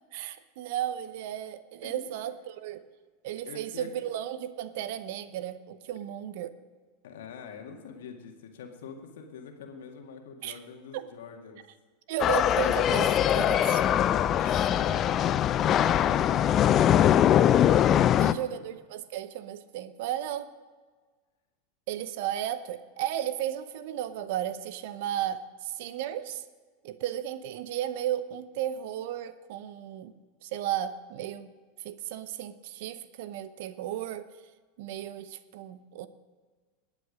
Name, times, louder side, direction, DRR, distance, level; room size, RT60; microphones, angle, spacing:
voice 1, 0.1-2.8 3.2-6.5 10.4-10.6 10.9-11.1 12.1-13.8 14.4-14.7 18.2-20.5 21.9-26.4 26.8-30.1 30.4-31.5 31.8-34.3 34.8-36.1, right 11 dB, 60° right, 14 dB, 0.8 m, -34 dB
voice 2, 3.5-3.9 7.0-11.6, left 6 dB, 70° left, 4 dB, 1.8 m, -45 dB
sound 1, 12.2-18.3, left 10 dB, 35° left, 0.5 m, -22 dB
20.0 x 8.3 x 5.1 m, 1.4 s
hypercardioid pair, 90°, 0 cm